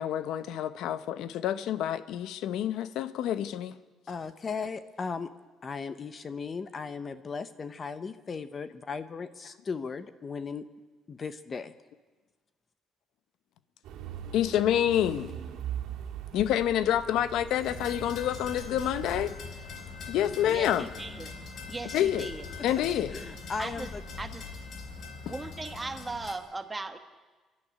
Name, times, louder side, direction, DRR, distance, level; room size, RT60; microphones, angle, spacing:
voice 1, 0.0-3.8 14.3-15.3 16.3-19.3 20.1-20.9 21.9-22.3 22.6-23.1 25.3-25.4, left 11 dB, 75° left, 13 dB, 0.9 m, -28 dB
voice 2, 4.1-5.3 5.6-10.7 11.1-11.7 23.1-24.0, left 5 dB, 25° left, 12 dB, 0.8 m, -37 dB
sound 1, 13.8-19.3, right 9 dB, 80° right, 2.4 m, -40 dB
sound 2, 17.6-26.3, left 4 dB, 45° left, 3.3 m, -42 dB
voice 3, 20.5-21.3 21.7-22.4 23.6-23.9 24.2-24.4 25.3-27.0, right 3 dB, 15° right, 8 dB, 1.2 m, -38 dB
29.5 x 12.0 x 9.9 m, 1.3 s
cardioid pair, 165°, 0 cm